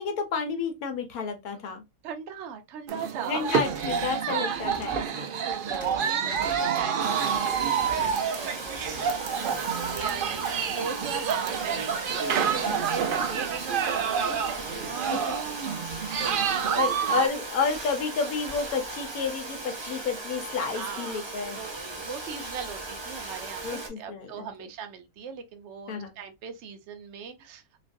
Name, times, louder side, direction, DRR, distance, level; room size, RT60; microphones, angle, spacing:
voice 1, 0.0-1.8 3.3-5.0 12.6-12.9 15.1-15.3 16.0-16.5 16.8-21.6 23.6-24.5 25.9-26.1, left 5 dB, 85° left, 1.3 m, -31 dB
voice 2, 2.0-3.7 4.5-4.7 5.0-5.3 5.7-8.9 9.3-10.4 10.7-11.9 12.3-15.3 16.2-17.3 20.7-27.8, right 6 dB, 60° right, 0.8 m, -39 dB
sound 1, 2.9-17.3, right 7 dB, 90° right, 0.4 m, -28 dB
sound 2, 3.4-4.1 4.4-5.1 5.5-6.0 6.3-6.8 7.3-8.2 8.6-9.3 9.7-10.1, equal, 15° right, 1.0 m, -45 dB
Domestic sounds home sounds, 7.0-23.9, right 2 dB, 30° right, 0.5 m, -37 dB
3.0 x 2.5 x 2.5 m
omnidirectional pair, 1.5 m